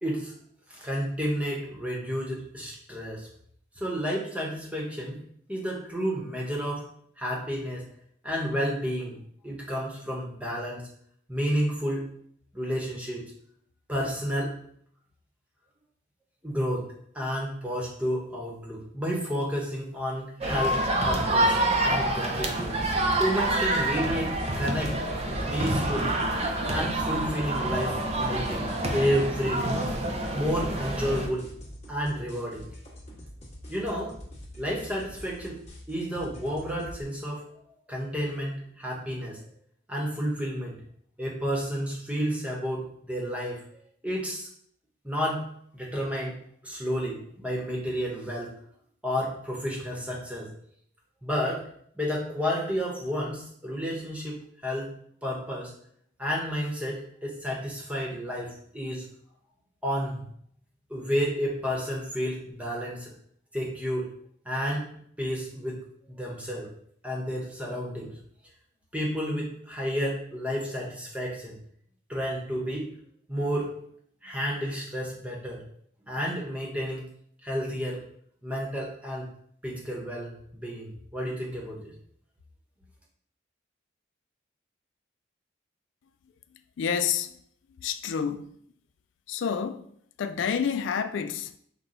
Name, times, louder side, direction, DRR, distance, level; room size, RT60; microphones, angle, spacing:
voice 1, 0.0-0.3 0.7-3.3 3.8-5.2 5.5-6.9 7.2-7.8 8.2-9.2 9.4-10.8 11.3-12.1 12.5-13.2 13.9-14.6 16.4-16.9 17.1-21.6 21.8-22.8 23.2-25.0 25.5-26.1 26.7-28.7 28.9-29.8 30.3-31.5 31.9-32.7 33.7-34.1 34.6-35.6 35.9-37.5 37.9-39.4 39.9-40.8 41.2-43.6 44.0-44.5 45.0-45.5 45.7-48.5 49.0-50.5 51.2-51.6 51.9-54.9 55.2-55.7 56.2-59.0 59.8-60.3 60.9-63.1 63.5-64.1 64.4-64.9 65.2-65.8 66.1-66.7 67.0-68.1 68.9-71.6 72.1-72.9 73.3-73.7 74.2-75.6 76.1-77.0 77.4-78.0 78.4-79.3 79.6-81.9, equal, 5° right, 1.0 m, -31 dB
sound 1, 20.4-31.3, right 1 dB, 30° right, 0.6 m, -27 dB
sound 2, 22.6-37.0, left 1 dB, 35° left, 1.4 m, -45 dB
voice 2, 86.8-87.3 87.8-88.5 89.3-89.9 90.2-91.6, left 7 dB, 70° left, 0.3 m, -28 dB
5.8 x 2.2 x 3.9 m
head